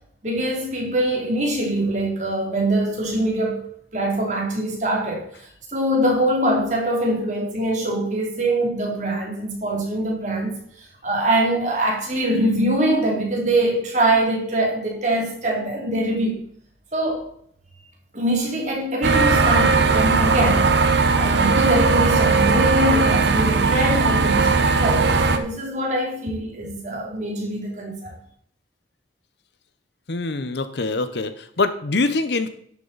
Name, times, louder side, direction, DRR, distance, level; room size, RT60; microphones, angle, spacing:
voice 1, 0.2-3.6 3.9-5.3 5.7-10.6 11.0-16.4 16.9-17.2 18.1-20.7 21.1-28.1, right 1 dB, 40° right, 2.8 m, -23 dB
sound 1, 19.0-25.4, right 4 dB, 70° right, 0.8 m, -18 dB
voice 2, 30.1-32.5, left 3 dB, 70° left, 0.8 m, -24 dB
11.0 x 7.3 x 4.0 m
head